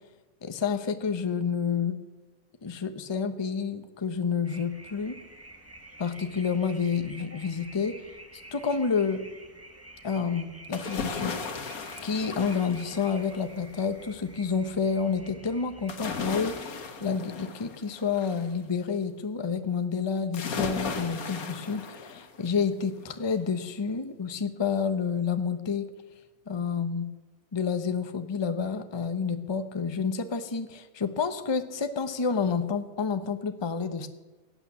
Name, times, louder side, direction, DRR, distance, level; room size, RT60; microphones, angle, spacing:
voice 1, 0.4-2.0 2.6-5.2 6.0-8.0 8.5-9.2 10.0-11.4 12.0-16.5 17.0-25.9 26.5-27.1 27.5-34.1, left 5 dB, 25° left, 9 dB, 0.7 m, -29 dB
sound 1, 4.4-16.7, right 1 dB, 10° right, 1.3 m, -49 dB
sound 2, 10.7-13.5 15.9-18.5 20.3-22.6 23.0-23.1, left 5 dB, 80° left, 1.8 m, -36 dB
17.0 x 8.9 x 7.2 m, 1.2 s
omnidirectional pair, 1.5 m